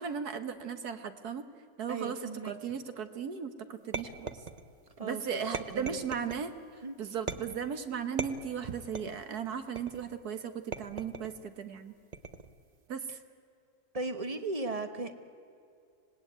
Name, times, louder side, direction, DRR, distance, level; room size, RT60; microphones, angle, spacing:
voice 1, 0.0-1.4 1.8-2.2 2.4-4.4 5.0-6.5 7.0-11.9 12.9-13.0, right 7 dB, 55° right, 9 dB, 1.6 m, -36 dB
voice 2, 1.9-2.7 5.0-6.0 6.8-6.9 13.1-13.2 13.9-15.2, right 3 dB, 25° right, 8 dB, 1.0 m, -37 dB
sound 1, 3.9-4.9 5.5-6.5 7.3-7.7 8.2-9.2 9.8-10.2 10.7-11.4 12.1-12.6, right 4 dB, 40° right, 0.6 m, -39 dB
26.0 x 19.0 x 9.4 m, 2.4 s
omnidirectional pair, 2.1 m